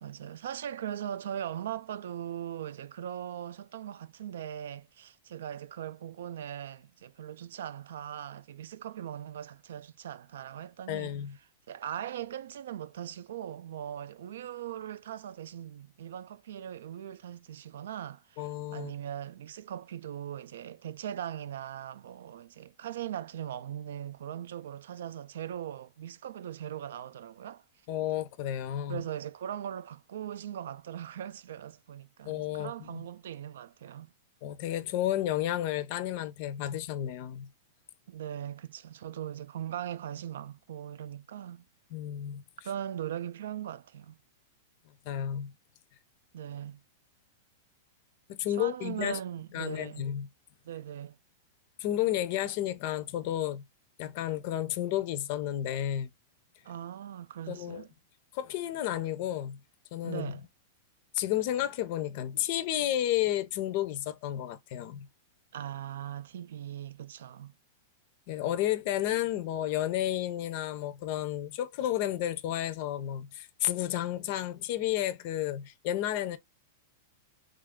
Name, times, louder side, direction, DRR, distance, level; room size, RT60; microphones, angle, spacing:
voice 1, 0.0-11.2 11.7-27.6 28.9-34.1 38.1-41.6 42.6-44.2 46.3-46.8 48.5-50.1 50.6-51.2 56.6-57.9 60.0-60.4 65.5-67.5, right 10 dB, 75° right, 0.3 m, -40 dB
voice 2, 10.9-11.4 18.4-18.9 27.9-29.0 32.2-33.0 34.4-37.5 41.9-42.4 45.1-45.5 48.3-49.2 49.5-50.3 51.8-53.6 54.0-56.1 57.5-57.8 58.3-59.6 59.9-60.3 61.1-65.1 68.3-76.4, left 12 dB, 40° left, 0.5 m, -32 dB
3.1 x 2.4 x 3.6 m
supercardioid pair, 170°, 0 cm